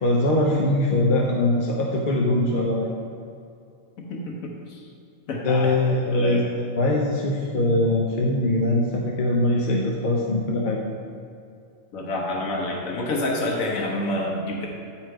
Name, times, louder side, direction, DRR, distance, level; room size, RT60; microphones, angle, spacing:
voice 1, 0.0-2.9 5.4-10.8, left 1 dB, 50° left, -1 dB, 0.6 m, -22 dB
voice 2, 4.1-4.8 5.3-6.5 11.9-14.7, left 1 dB, 75° left, -1 dB, 1.3 m, -28 dB
8.8 x 4.4 x 4.6 m, 2.5 s
omnidirectional pair, 1.4 m